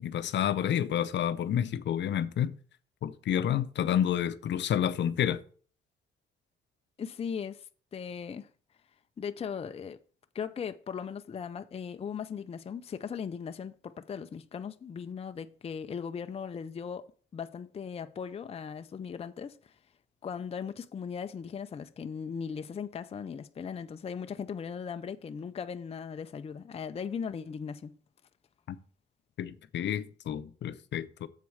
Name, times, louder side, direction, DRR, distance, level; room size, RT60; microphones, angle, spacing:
voice 1, 0.0-2.6 3.0-5.4 28.7-28.8 29.4-31.3, left 10 dB, 65° left, 0.7 m, -29 dB
voice 2, 7.0-7.6 7.9-8.5 9.2-10.0 10.3-17.1 17.3-19.7 20.2-28.0, left 6 dB, 30° left, 0.5 m, -38 dB
7.4 x 4.6 x 7.1 m
cardioid pair, 90°, 20 cm